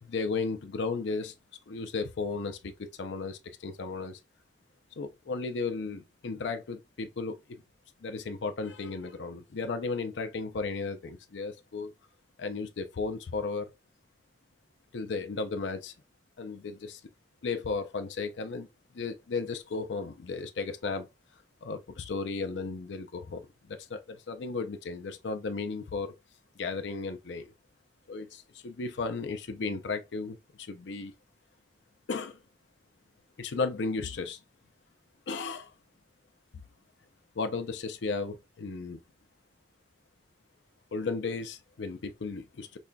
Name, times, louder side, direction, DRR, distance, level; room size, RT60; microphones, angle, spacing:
voice 1, 0.0-1.3 1.7-4.2 5.0-7.6 8.0-11.9 12.4-13.7 14.9-15.9 16.4-17.0 17.4-18.7 18.9-21.1 21.6-26.1 26.6-27.5 28.1-31.1 32.1-32.4 33.4-34.4 35.3-35.7 37.4-39.0 40.9-42.8, left 4 dB, 85° left, 0.5 m, -35 dB
5.2 x 2.2 x 2.3 m
head